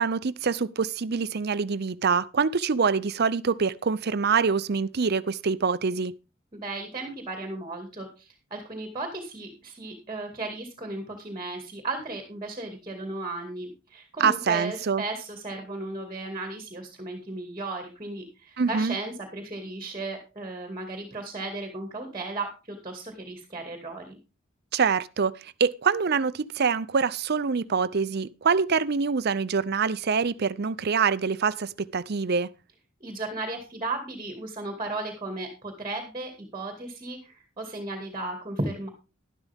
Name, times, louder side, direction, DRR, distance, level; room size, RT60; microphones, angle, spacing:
voice 1, 0.0-6.1 14.2-15.0 18.6-19.0 24.7-32.5, right 5 dB, 55° right, 0.6 m, -25 dB
voice 2, 6.5-24.2 33.0-38.9, right 2 dB, 25° right, 2.3 m, -35 dB
12.0 x 12.0 x 3.5 m
head